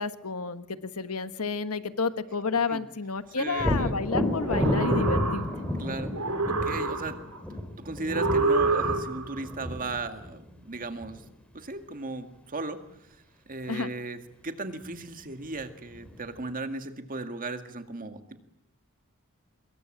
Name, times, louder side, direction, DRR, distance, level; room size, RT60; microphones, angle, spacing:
voice 1, 0.0-5.5 13.7-13.9, left 4 dB, 80° left, 11 dB, 1.5 m, -30 dB
voice 2, 3.4-3.9 5.8-6.1 6.5-7.2 7.8-11.2 11.5-12.8 13.5-18.4, right 3 dB, 40° right, 8 dB, 2.0 m, -36 dB
Thunder, 3.6-11.2 14.9-15.0 15.5-16.3, left 1 dB, 5° left, 4.7 m, -31 dB
sound 1, 4.3-5.8 6.1-7.4 8.1-9.4, right 3 dB, 85° right, 4.0 m, -27 dB
25.5 x 22.0 x 9.0 m, 0.81 s
head